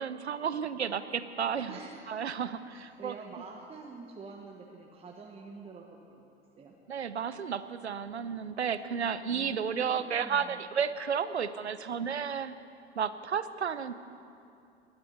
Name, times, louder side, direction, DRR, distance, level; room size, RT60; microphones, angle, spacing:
voice 1, 0.0-1.8 2.1-3.2 6.9-12.5 13.0-14.0, right 7 dB, 80° right, 13 dB, 0.8 m, -32 dB
voice 2, 1.7-2.0 2.7-6.2 6.6-6.7 9.3-10.6, right 4 dB, 20° right, 0 dB, 1.4 m, -47 dB
20.5 x 12.0 x 5.6 m, 2.5 s
figure-of-eight pair, 85°, 32 cm